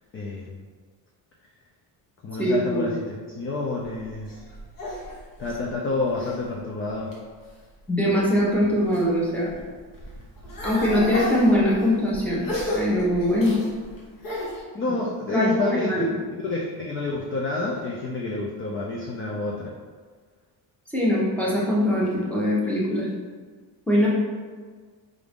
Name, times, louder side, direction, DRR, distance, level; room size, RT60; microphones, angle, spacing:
voice 1, 0.1-0.5 2.2-4.4 5.4-7.1 14.7-15.9 16.3-19.7, left 3 dB, 30° left, -2 dB, 0.4 m, -29 dB
voice 2, 2.4-2.9 7.9-9.5 10.6-12.4 12.7-13.6 15.3-15.5 15.9-16.2 20.9-23.1 23.9-24.1, equal, 5° left, -6 dB, 0.8 m, -22 dB
sound 1, 3.8-6.4 6.9-7.5 8.1-9.1 9.4-14.6, left 1 dB, 50° left, 1.0 m, -33 dB
4.9 x 2.5 x 3.5 m, 1.5 s
cardioid pair, 160°, 43 cm